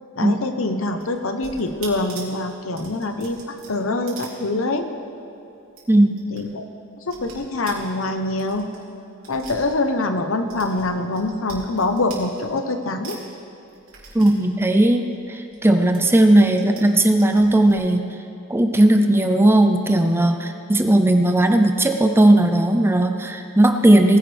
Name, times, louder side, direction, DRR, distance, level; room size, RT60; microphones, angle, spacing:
voice 1, 0.2-4.9 6.3-6.6 7.1-8.7 9.3-13.2, left 2 dB, 70° left, 7 dB, 0.9 m, -24 dB
sound 1, 0.8-5.0 5.3-5.4 5.7-6.4 6.7-10.2 10.5-12.8 13.0-15.6 15.9-16.8 17.1-17.8, right 5 dB, 85° right, 3.1 m, -42 dB
voice 2, 14.1-18.2 18.5-24.2, right 1 dB, 10° right, 6 dB, 0.6 m, -17 dB
19.0 x 10.5 x 3.4 m, 2.9 s
head